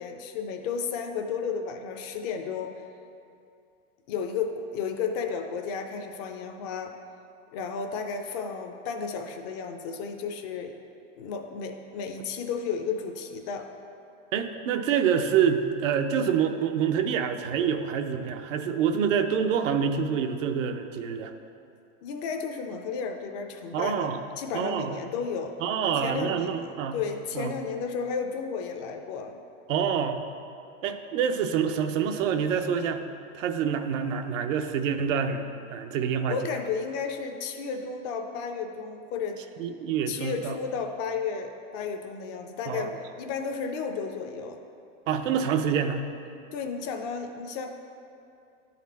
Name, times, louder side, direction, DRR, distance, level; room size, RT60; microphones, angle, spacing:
voice 1, 0.0-2.7 4.1-6.9 7.5-10.7 11.2-13.7 22.0-25.5 26.0-29.4 36.3-39.4 40.1-44.6 46.5-47.7, left 5 dB, 35° left, 5 dB, 0.4 m, -33 dB
voice 2, 14.3-21.3 23.7-24.2 24.5-25.0 25.6-27.0 27.3-27.5 29.7-30.2 30.8-33.0 33.3-36.5 39.6-40.6 42.7-43.0 45.1-46.0, right 7 dB, 80° right, 7 dB, 0.7 m, -27 dB
10.0 x 4.2 x 4.1 m, 2.6 s
supercardioid pair, 150°, 38 cm